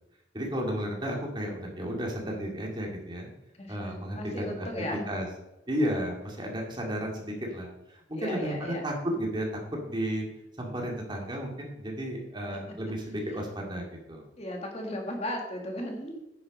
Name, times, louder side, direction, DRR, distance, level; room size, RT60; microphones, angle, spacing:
voice 1, 0.3-3.3 3.7-5.3 5.7-10.3 10.6-14.2, equal, 25° right, 0 dB, 2.3 m, -33 dB
voice 2, 3.6-5.1 8.2-8.8 14.4-16.2, left 1 dB, 35° left, 2 dB, 1.7 m, -35 dB
10.0 x 7.9 x 5.3 m, 0.90 s
head